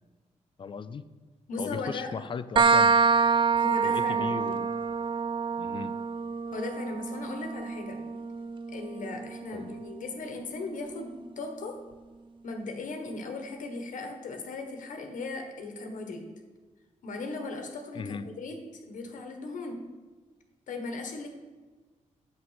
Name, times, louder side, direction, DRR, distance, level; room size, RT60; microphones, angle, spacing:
voice 1, 0.6-1.0 1.6-3.0 3.8-4.7 5.6-6.0 9.5-9.8 17.9-18.3, left 5 dB, 40° left, 14 dB, 0.5 m, -37 dB
voice 2, 1.5-2.3 3.6-4.6 6.5-8.1 8.7-11.8 12.4-16.2 17.0-19.8 20.7-21.3, left 3 dB, 80° left, 4 dB, 1.5 m, -37 dB
sound 1, 2.6-10.0, right 5 dB, 40° right, 0.4 m, -27 dB
8.4 x 7.7 x 5.8 m, 1.3 s
wide cardioid pair, 150°, 13 cm